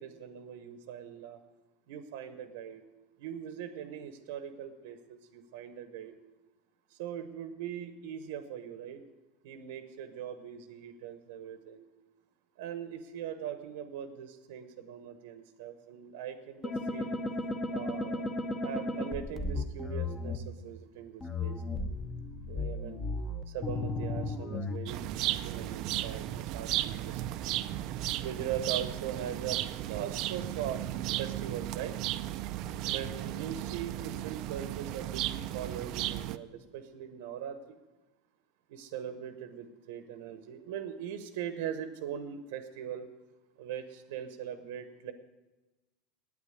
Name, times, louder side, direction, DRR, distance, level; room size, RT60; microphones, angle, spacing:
voice 1, 0.0-1.4 1.9-2.8 3.2-6.1 6.9-9.0 9.4-11.8 12.6-17.2 17.7-18.3 18.6-21.8 22.5-23.0 23.5-27.4 28.2-30.8 31.2-32.0 32.8-37.8 38.7-43.1 43.6-45.1, right 9 dB, 80° right, 9 dB, 1.0 m, -41 dB
sound 1, 16.6-20.4 21.2-24.8, left 2 dB, 15° left, 0.8 m, -34 dB
sound 2, 24.9-36.4, right 14 dB, 50° right, 0.4 m, -35 dB
9.1 x 8.6 x 9.6 m, 1.1 s
supercardioid pair, 155°, 0 cm